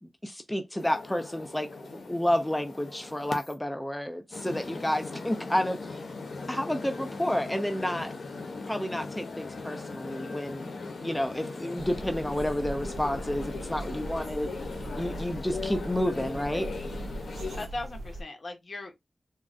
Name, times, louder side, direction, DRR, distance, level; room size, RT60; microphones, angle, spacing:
voice 1, 0.0-6.0 6.5-8.1 8.7-10.7 11.0-14.5 14.9-16.7, left 1 dB, 10° left, 0.5 m, -30 dB
sound 1, 0.8-3.5 4.3-17.7, left 3 dB, 80° left, 0.7 m, -39 dB
sound 2, 11.8-18.2, right 1 dB, 85° right, 0.4 m, -40 dB
voice 2, 17.4-18.9, left 2 dB, 55° left, 0.8 m, -39 dB
3.5 x 2.1 x 2.5 m
wide cardioid pair, 70°, 0 cm